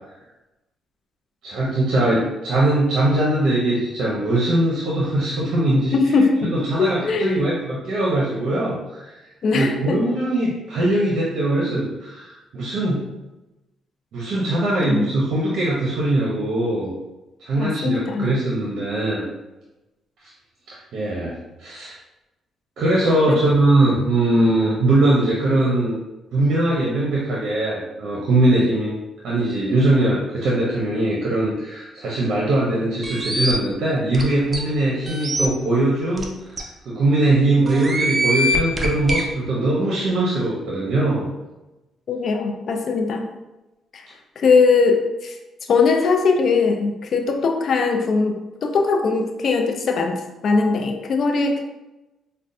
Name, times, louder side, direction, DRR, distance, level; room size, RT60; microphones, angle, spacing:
voice 1, 1.4-5.9 6.5-9.2 9.5-13.1 14.1-16.9 17.4-19.2 20.7-21.9 22.8-26.0 26.3-29.0 29.2-41.3, right 1 dB, 70° right, -5 dB, 0.7 m, -21 dB
voice 2, 5.9-6.5 6.8-7.5 9.4-10.0 14.8-15.1 17.6-18.3 23.3-23.4 42.1-43.3 43.9-44.1 44.4-45.4 45.7-50.2 50.4-51.6, left 4 dB, 60° left, 4 dB, 0.4 m, -20 dB
sound 1, 33.0-33.5 34.1-34.2 34.5-34.6 35.1-35.5 36.2-36.3 36.6-36.7 37.7-39.2, equal, 30° right, 0.6 m, -23 dB
5.1 x 2.2 x 2.6 m, 1.0 s
cardioid pair, 90°, 0 cm